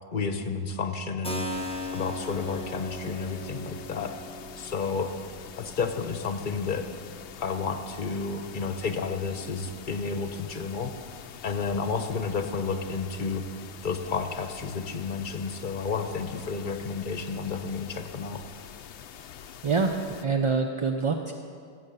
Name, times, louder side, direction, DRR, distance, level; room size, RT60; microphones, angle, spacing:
voice 1, 0.1-1.5 1.9-4.1 4.6-5.1 5.6-6.9 7.4-10.9 11.4-13.4 13.8-18.4, left 5 dB, 50° left, 7 dB, 1.0 m, -31 dB
Keyboard (musical), 1.2-9.8, left 1 dB, 5° left, 0.8 m, -40 dB
sound 1, 1.5-20.3, left 8 dB, 90° left, 0.9 m, -46 dB
voice 2, 19.6-21.3, right 4 dB, 40° right, 4 dB, 0.5 m, -26 dB
16.5 x 7.9 x 6.6 m, 2.3 s
omnidirectional pair, 1.1 m